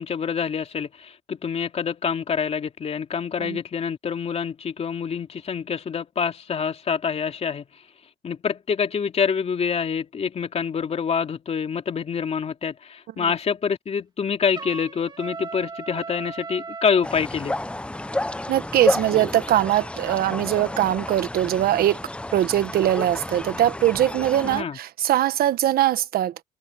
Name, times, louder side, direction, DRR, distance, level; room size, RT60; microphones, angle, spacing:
voice 1, 0.0-7.8 8.2-17.5 24.4-24.8, left 6 dB, 40° left, 2.9 m, -26 dB
Trumpet, 14.5-17.1, right 4 dB, 25° right, 2.7 m, -37 dB
sound 1, 17.0-24.6, left 1 dB, 5° left, 0.8 m, -30 dB
voice 2, 18.5-22.0 22.3-26.3, right 12 dB, 65° right, 1.2 m, -21 dB
cardioid pair, 110°, 17 cm